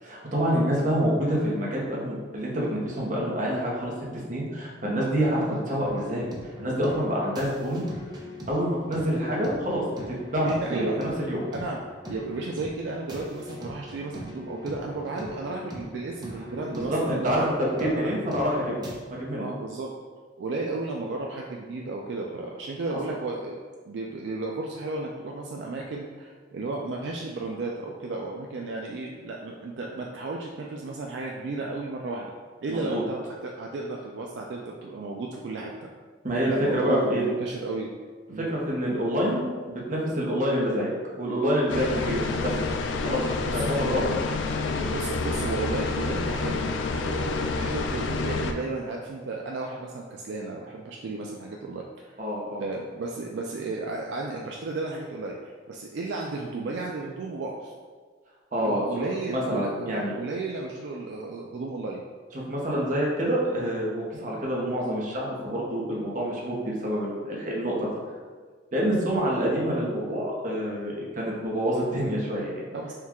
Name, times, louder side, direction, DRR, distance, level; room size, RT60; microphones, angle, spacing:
voice 1, 0.0-3.9 4.3-6.3 6.6-7.8 8.5-9.8 10.1-11.4 16.7-18.8 19.1-19.5 32.7-33.0 36.2-37.2 38.4-42.7 43.0-44.0 44.8-44.9 52.2-52.6 58.5-58.9 59.3-60.1 62.3-67.9 68.7-72.6, equal, 45° right, -4 dB, 0.9 m, -27 dB
sound 1, 5.8-19.0, left 1 dB, 20° right, 0.6 m, -41 dB
voice 2, 10.4-11.1 11.5-11.8 12.1-17.5 17.7-18.3 19.4-19.9 20.4-23.6 23.8-32.3 32.6-35.9 36.5-37.9 38.3-38.5 43.2-43.6 44.1-44.2 44.9-52.1 52.6-57.7 58.6-62.0 68.8-68.9 72.7-72.9, right 3 dB, 70° right, -1 dB, 0.3 m, -34 dB
sound 2, 41.7-48.5, left 3 dB, 85° left, 0.3 m, -28 dB
4.4 x 2.3 x 3.5 m, 1.5 s
head